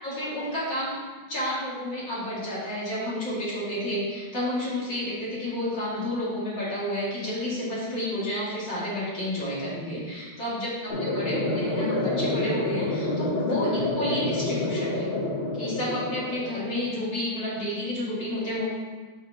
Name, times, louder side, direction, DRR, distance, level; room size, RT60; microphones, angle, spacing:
voice 1, 0.0-1.0 1.3-15.1 15.5-18.6, left 1 dB, 60° left, -8 dB, 2.7 m, -30 dB
sound 1, 10.9-16.9, left 2 dB, 90° left, 0.5 m, -28 dB
5.6 x 3.5 x 5.2 m, 1.4 s
omnidirectional pair, 2.2 m